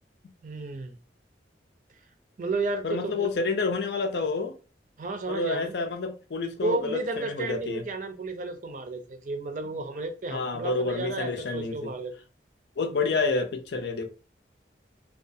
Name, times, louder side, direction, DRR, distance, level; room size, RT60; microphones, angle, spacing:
voice 1, 0.4-1.0 2.4-3.3 5.0-5.7 6.6-12.1, right 3 dB, 45° right, 0.4 m, -32 dB
voice 2, 2.8-4.6 5.3-7.8 10.3-11.9 12.8-14.1, left 3 dB, 70° left, 0.5 m, -29 dB
2.4 x 2.2 x 2.6 m
head